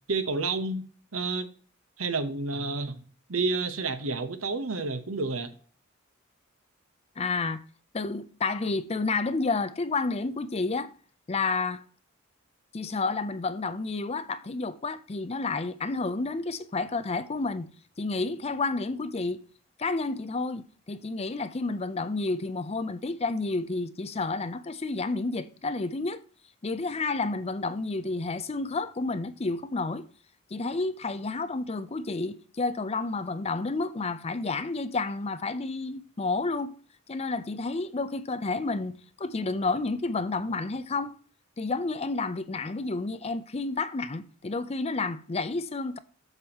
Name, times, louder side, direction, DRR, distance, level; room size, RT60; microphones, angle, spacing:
voice 1, 0.1-0.8 1.1-1.5 2.0-3.0 3.3-5.5, right 3 dB, 85° right, 1.0 m, -29 dB
voice 2, 7.2-7.6 7.9-10.9 11.3-11.8 12.7-17.7 18.0-19.4 19.8-26.2 26.6-30.0 30.5-36.7 37.1-41.1 41.6-46.0, left 3 dB, 30° left, 0.5 m, -30 dB
8.0 x 7.1 x 2.9 m
head